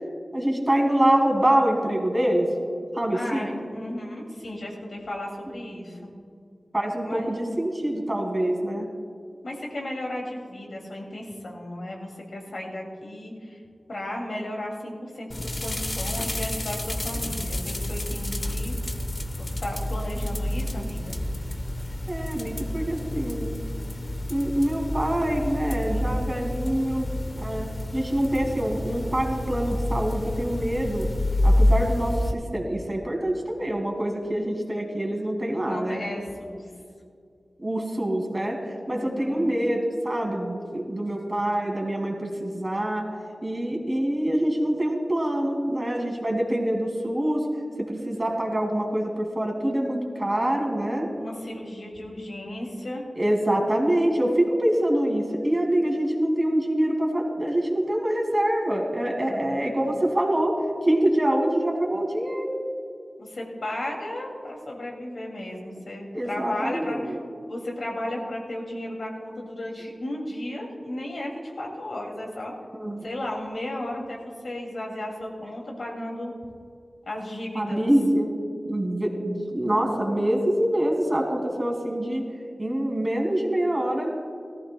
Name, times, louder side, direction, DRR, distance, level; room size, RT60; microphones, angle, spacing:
voice 1, 0.3-2.5 2.9-3.5 6.7-8.9 22.1-23.5 24.3-27.1 27.4-27.7 27.9-31.1 31.4-36.0 37.6-38.6 38.9-43.1 43.4-47.4 47.9-51.1 53.2-60.5 60.8-62.5 66.1-67.2 72.7-73.0 74.0-74.1 77.5-78.3 78.7-82.2 82.6-84.1, right 1 dB, 30° right, 1 dB, 2.4 m, -25 dB
voice 2, 3.1-6.1 7.0-7.3 9.4-13.6 13.9-19.0 19.4-21.2 35.6-36.7 38.9-39.5 51.1-53.0 59.2-59.6 63.2-67.2 67.5-72.5 73.0-76.3 77.1-77.9, left 1 dB, 70° left, -1 dB, 2.5 m, -34 dB
sound 1, 15.3-32.3, left 1 dB, 40° left, 0.9 m, -28 dB
18.0 x 14.0 x 2.3 m, 2.3 s
wide cardioid pair, 65°, 0 cm